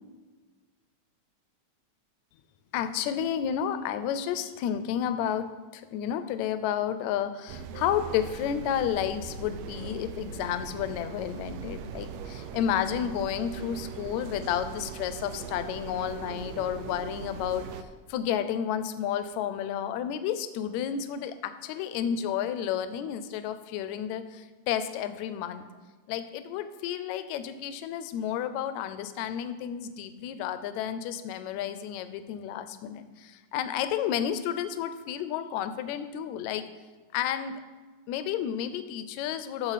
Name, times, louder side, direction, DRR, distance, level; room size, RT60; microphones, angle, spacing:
voice 1, 2.7-17.7 18.1-25.7 26.1-36.7 37.1-37.6 38.1-39.7, left 9 dB, 80° left, 11 dB, 1.8 m, -31 dB
sound 1, 7.5-17.8, right 6 dB, 75° right, 1.6 m, -40 dB
13.5 x 7.5 x 4.1 m, 1.3 s
omnidirectional pair, 3.5 m